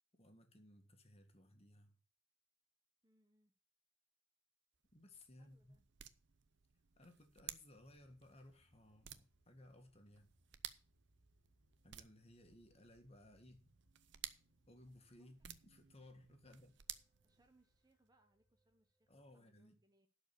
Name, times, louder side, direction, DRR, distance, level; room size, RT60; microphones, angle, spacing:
voice 1, 0.1-2.0 4.9-5.7 7.0-10.3 11.8-13.7 14.7-16.8 19.1-19.7, left 1 dB, 30° left, 1.9 m, -61 dB
voice 2, 3.0-3.5 5.4-5.8 15.2-15.5 16.5-16.7 17.2-20.1, right 2 dB, 20° right, 0.9 m, -76 dB
sound 1, 4.7-18.0, right 11 dB, 60° right, 0.7 m, -56 dB
sound 2, 7.7-19.4, left 1 dB, 10° left, 3.5 m, -82 dB
11.5 x 5.0 x 8.6 m
head